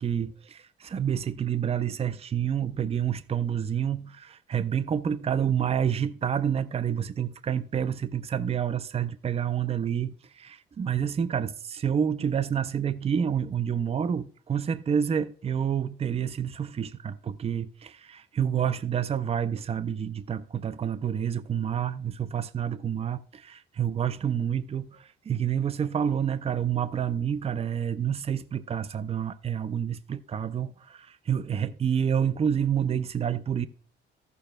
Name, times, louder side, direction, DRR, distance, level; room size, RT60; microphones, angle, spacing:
voice 1, 0.0-33.7, right 8 dB, 30° right, 0.5 m, -28 dB
14.5 x 6.8 x 2.2 m
cardioid pair, 90°, 20 cm